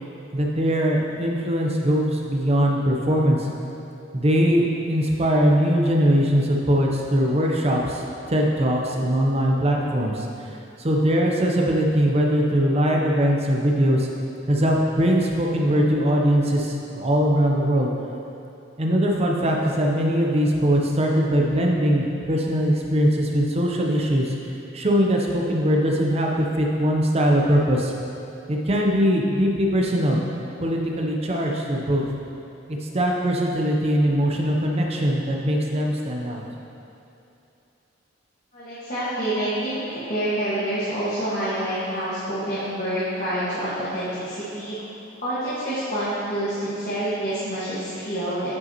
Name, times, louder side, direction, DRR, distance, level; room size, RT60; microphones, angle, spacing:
voice 1, 0.3-3.5 4.1-8.0 8.3-10.3 10.8-14.1 14.5-17.9 18.8-24.3 24.7-27.9 28.5-30.2 30.6-32.0 32.9-36.4, equal, 35° right, -1 dB, 0.7 m, -21 dB
voice 2, 38.5-44.7 45.2-48.5, right 1 dB, 45° left, -12 dB, 1.6 m, -27 dB
9.4 x 5.4 x 2.9 m, 2.8 s
head